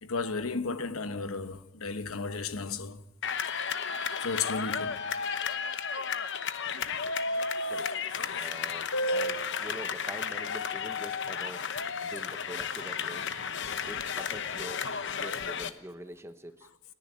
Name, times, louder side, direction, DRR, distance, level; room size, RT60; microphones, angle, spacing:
voice 1, 0.0-3.0 4.2-5.0 8.4-8.5 8.9-9.6, left 2 dB, 75° left, 1.1 m, -33 dB
sound 1, 3.2-15.7, left 6 dB, 55° left, 1.0 m, -33 dB
voice 2, 8.4-9.3 9.6-11.7 12.0-13.3 13.9-16.7, right 1 dB, 10° right, 0.9 m, -45 dB
29.5 x 10.5 x 9.0 m
head